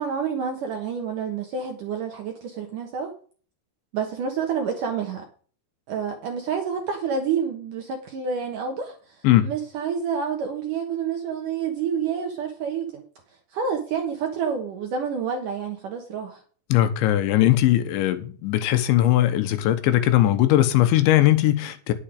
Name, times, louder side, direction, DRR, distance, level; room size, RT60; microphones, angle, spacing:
voice 1, 0.0-3.1 3.9-5.2 5.9-13.0 13.5-16.4, right 6 dB, 65° right, 2.1 m, -28 dB
voice 2, 16.7-21.9, left 13 dB, 80° left, 3.3 m, -19 dB
10.5 x 7.8 x 4.9 m
omnidirectional pair, 5.2 m